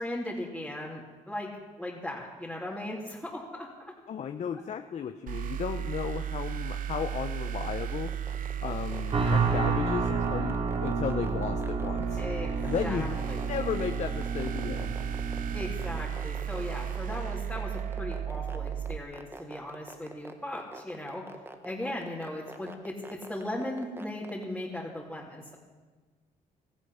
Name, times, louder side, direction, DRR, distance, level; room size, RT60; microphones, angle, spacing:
voice 1, 0.0-1.5 1.8-3.9 12.2-13.4 15.5-21.3 21.6-25.5, left 1 dB, ahead, -6 dB, 3.1 m, -37 dB
voice 2, 4.1-8.1 8.6-12.2 12.6-15.0, left 8 dB, 50° left, 7 dB, 0.8 m, -35 dB
sound 1, 5.3-19.0, right 9 dB, 65° right, 0.9 m, -34 dB
sound 2, 7.5-24.4, right 2 dB, 15° right, 1.2 m, -44 dB
sound 3, 9.1-16.0, right 4 dB, 40° right, 2.9 m, -31 dB
16.5 x 14.5 x 5.7 m, 1.4 s
cardioid pair, 85°, 15 cm